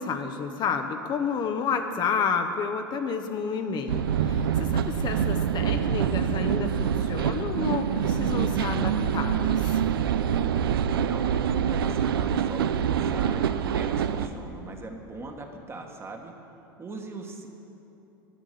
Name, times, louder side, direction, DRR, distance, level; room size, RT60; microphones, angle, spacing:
voice 1, 0.0-9.8, left 6 dB, 35° left, 6 dB, 0.8 m, -30 dB
sound 1, 3.9-14.3, right 8 dB, 80° right, 0.5 m, -25 dB
voice 2, 10.9-16.3 16.8-17.5, right 3 dB, 20° right, 3 dB, 1.4 m, -41 dB
11.0 x 6.2 x 8.3 m, 3.0 s
hypercardioid pair, 90°, 12 cm